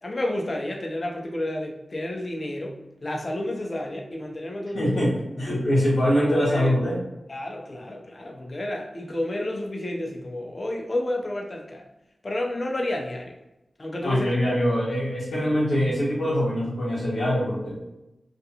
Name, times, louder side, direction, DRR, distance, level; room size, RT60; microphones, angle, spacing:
voice 1, 0.0-5.0 5.5-5.6 6.1-6.7 7.3-11.8 12.2-13.4 13.8-14.4, left 1 dB, 50° left, 1 dB, 0.5 m, -31 dB
voice 2, 4.7-7.0 14.0-18.0, equal, 85° left, -11 dB, 0.8 m, -23 dB
2.4 x 2.2 x 2.8 m, 0.93 s
cardioid pair, 40°, 0 cm